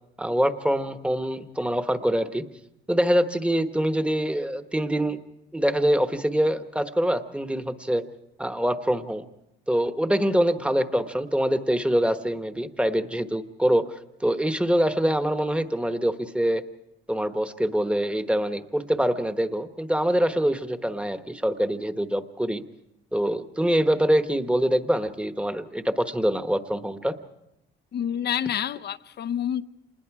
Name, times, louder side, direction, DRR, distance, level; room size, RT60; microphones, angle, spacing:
voice 1, 0.2-2.4 2.9-5.2 5.5-8.0 8.4-9.2 9.7-13.9 14.2-16.6 17.1-22.6 23.1-27.2, equal, 5° right, 1.1 m, -24 dB
voice 2, 27.9-29.7, left 9 dB, 55° left, 0.7 m, -28 dB
27.0 x 20.5 x 4.8 m
cardioid pair, 90°, 20 cm